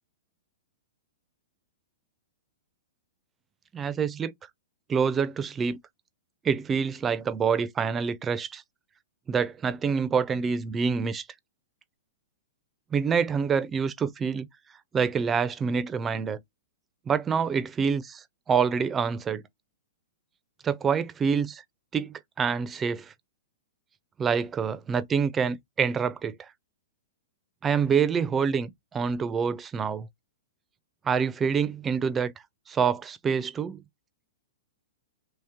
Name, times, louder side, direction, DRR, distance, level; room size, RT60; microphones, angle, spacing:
voice 1, 3.7-4.3 4.9-5.8 6.4-8.6 9.3-11.3 12.9-14.5 14.9-16.4 17.1-19.4 20.6-21.6 21.9-23.1 24.2-26.5 27.6-30.1 31.0-32.3 32.7-33.8, right 6 dB, 20° right, 0.5 m, -26 dB
3.0 x 2.8 x 3.5 m
hypercardioid pair, 125°, 0 cm